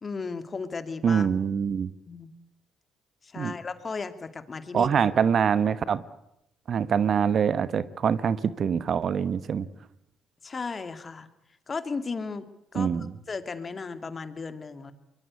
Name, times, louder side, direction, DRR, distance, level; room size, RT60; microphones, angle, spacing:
voice 1, 0.0-1.3 2.1-2.3 3.2-4.9 10.4-11.3 11.7-12.5 12.7-13.0 13.3-14.9, left 4 dB, 35° left, 10 dB, 2.3 m, -35 dB
voice 2, 1.0-1.9 3.4-3.5 4.7-6.0 6.7-9.7 12.7-13.1, right 7 dB, 55° right, 16 dB, 1.0 m, -24 dB
23.5 x 22.5 x 8.4 m, 0.83 s
hypercardioid pair, 55°, 0 cm